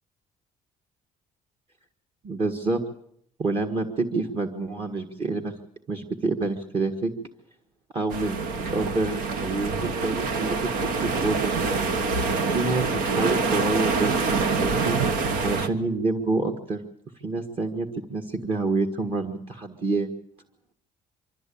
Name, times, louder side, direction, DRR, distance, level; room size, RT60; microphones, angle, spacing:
voice 1, 2.2-2.8 3.4-5.5 5.9-7.1 7.9-8.4 8.7-11.9 12.5-16.8 17.2-20.1, right 3 dB, 40° right, 4 dB, 1.7 m, -28 dB
Sea Bogatell Dock, 8.1-15.7, right 4 dB, 80° right, 1.4 m, -26 dB
24.5 x 13.5 x 8.6 m, 0.71 s
cardioid pair, 115°, 14 cm